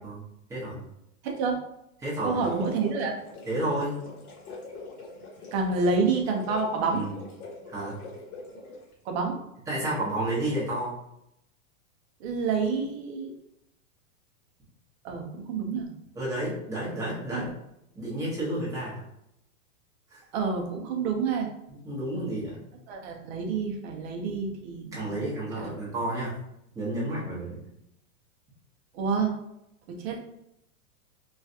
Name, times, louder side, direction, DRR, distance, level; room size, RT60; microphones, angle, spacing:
voice 1, 0.5-0.8 2.0-2.4 3.5-4.0 6.9-7.2 7.7-8.0 9.7-10.9 16.1-17.5 17.9-19.0 20.1-20.2 21.7-22.6 24.9-26.3 26.7-27.6, right 1 dB, 5° right, -8 dB, 0.9 m, -31 dB
voice 2, 1.2-1.6 2.2-3.1 5.5-7.1 9.1-9.4 12.2-13.3 15.0-15.9 17.3-17.5 20.3-21.5 22.9-25.3 25.6-25.7 28.9-29.3 29.9-30.2, right 4 dB, 45° right, 2 dB, 0.7 m, -28 dB
sound 1, 2.1-8.9, left 3 dB, 75° left, 1.3 m, -43 dB
3.1 x 2.4 x 2.7 m, 0.81 s
supercardioid pair, 150°, 44 cm